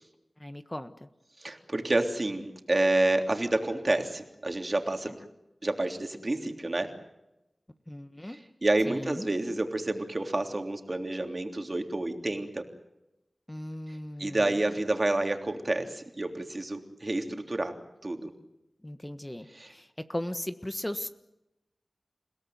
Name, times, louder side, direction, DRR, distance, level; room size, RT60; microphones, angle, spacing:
voice 1, 0.4-1.1 7.9-8.4 8.9-9.3 13.5-14.6 18.8-21.1, left 1 dB, 20° left, 9 dB, 1.4 m, -37 dB
voice 2, 1.4-5.2 5.6-6.9 8.6-12.6 14.2-17.7 18.0-18.3 19.6-19.7, right 2 dB, 40° right, 4 dB, 3.3 m, -29 dB
29.5 x 17.5 x 9.4 m, 0.91 s
wide cardioid pair, 60°, 0 cm